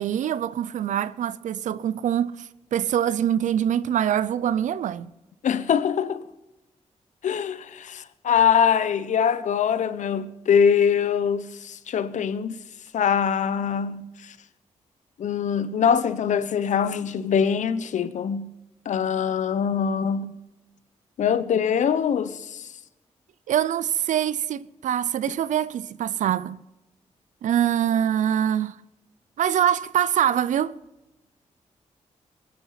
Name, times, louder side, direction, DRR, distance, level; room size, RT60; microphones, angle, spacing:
voice 1, 0.0-5.1 23.5-26.6 27.4-28.8 29.4-30.8, right 10 dB, 80° right, 0.6 m, -24 dB
voice 2, 5.4-6.2 7.2-12.6 12.9-14.0 15.2-18.5 18.9-20.3 21.2-22.6, left 7 dB, 75° left, 0.9 m, -23 dB
22.5 x 9.8 x 5.8 m
cardioid pair, 70°, 12 cm